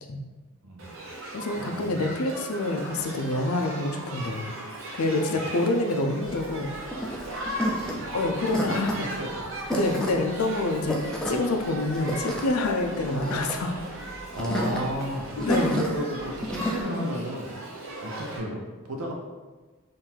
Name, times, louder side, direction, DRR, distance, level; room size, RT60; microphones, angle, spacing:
voice 1, 0.6-1.0 1.6-2.0 5.3-5.4 7.7-8.1 8.5-9.5 14.3-15.3 15.6-17.5 18.0-18.6 18.9-19.1, equal, 90° right, 1 dB, 0.8 m, -33 dB
Shout / Human group actions, 0.8-18.4, right 1 dB, 60° right, 0.8 m, -38 dB
voice 2, 1.3-4.5 4.9-6.7 8.1-9.0 9.7-13.8 15.4-15.8, left 2 dB, 75° left, 4 dB, 0.5 m, -27 dB
sound 1, 6.2-16.8, equal, 5° left, 0.4 m, -31 dB
3.8 x 2.6 x 4.4 m, 1.3 s
head